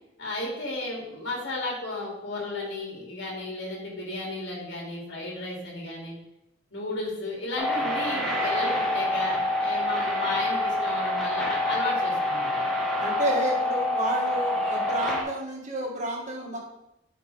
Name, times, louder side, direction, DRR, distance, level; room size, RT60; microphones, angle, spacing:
voice 1, 0.2-6.1 6.7-12.5, left 2 dB, 65° left, -2 dB, 2.8 m, -33 dB
sound 1, 7.6-15.2, left 1 dB, ahead, 1.5 m, -26 dB
voice 2, 13.0-16.6, right 1 dB, 40° right, -1 dB, 1.8 m, -30 dB
10.5 x 5.3 x 3.5 m, 0.85 s
head